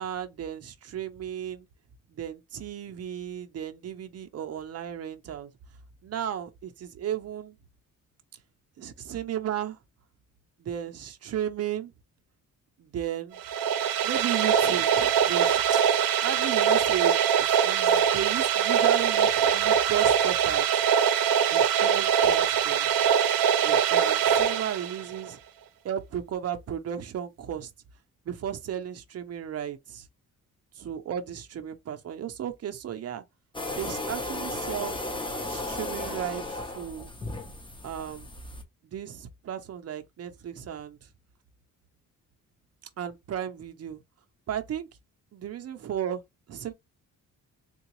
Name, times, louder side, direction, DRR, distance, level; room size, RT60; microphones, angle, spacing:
voice 1, 0.0-1.7 2.1-5.5 6.0-7.6 8.8-9.8 10.6-11.9 12.8-13.4 14.0-15.8 16.2-20.8 21.4-23.0 23.6-25.4 25.8-27.7 28.3-30.1 30.8-33.2 33.8-35.0 35.4-37.1 37.8-38.3 38.9-41.0 43.0-44.0 44.5-44.9 45.3-46.2 46.5-46.7, right 10 dB, 45° right, 0.7 m, -34 dB
sound 1, 13.4-25.3, right 8 dB, 90° right, 0.6 m, -23 dB
sound 2, 33.5-38.6, left 2 dB, 15° left, 0.7 m, -35 dB
3.8 x 2.4 x 3.0 m
cardioid pair, 135°, 33 cm